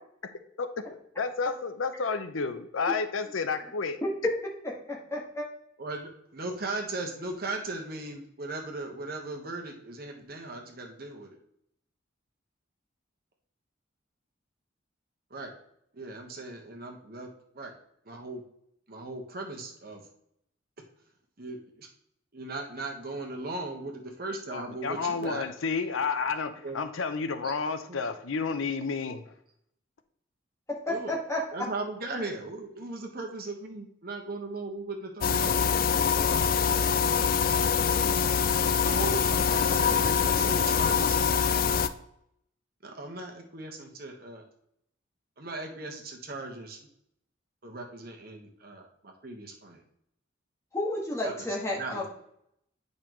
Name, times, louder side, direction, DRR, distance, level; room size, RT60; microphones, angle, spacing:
voice 1, 1.2-4.0 24.5-29.3, left 4 dB, 90° left, 9 dB, 0.7 m, -31 dB
voice 2, 4.9-5.5 30.7-31.4 50.7-52.0, left 1 dB, 15° left, -3 dB, 1.7 m, -31 dB
voice 3, 5.8-11.3 15.3-15.5 15.9-17.3 17.5-17.7 18.1-18.4 18.9-20.0 21.4-21.9 22.3-25.4 26.6-26.8 27.9-28.0 30.9-31.1 31.5-37.2 38.8-41.2 42.8-44.4 45.4-46.8 47.6-49.8 51.2-51.5 51.8-52.1, right 2 dB, 50° right, 2 dB, 1.3 m, -38 dB
sound 1, 35.2-41.9, left 6 dB, 45° left, 0.4 m, -24 dB
8.6 x 5.4 x 3.1 m, 0.73 s
head